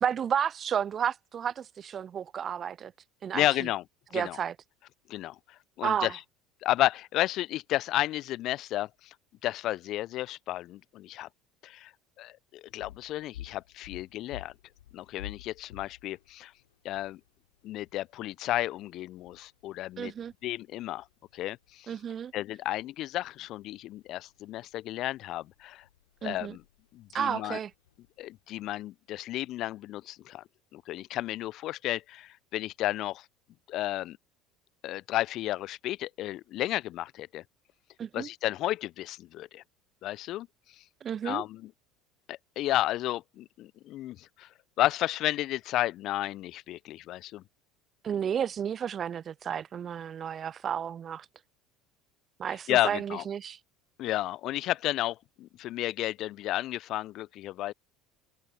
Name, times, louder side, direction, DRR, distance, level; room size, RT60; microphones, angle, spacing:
voice 1, 0.0-2.9 3.2-3.4 4.1-4.5 5.8-6.1 20.0-20.3 21.9-22.3 26.2-26.6 27.1-27.7 38.0-38.3 41.0-41.4 48.0-51.3 52.4-53.6, right 8 dB, 35° right, 0.4 m, -32 dB
voice 2, 3.3-3.8 4.1-4.4 5.1-6.2 6.6-9.1 9.4-11.3 11.6-11.9 12.2-14.5 14.9-16.5 16.8-17.2 17.6-20.1 20.4-21.1 21.3-21.9 22.3-25.8 26.2-26.6 26.9-27.6 28.2-30.4 30.7-33.3 33.7-34.2 34.8-37.4 38.1-39.6 40.0-40.5 40.8-40.9 41.2-41.7 42.3-44.5 44.8-47.4 52.5-53.2 54.0-57.7, left 15 dB, 50° left, 1.0 m, -32 dB
sound 1, 12.7-28.6, left 13 dB, 75° left, 4.7 m, -52 dB
open air
figure-of-eight pair, 65°, 0 cm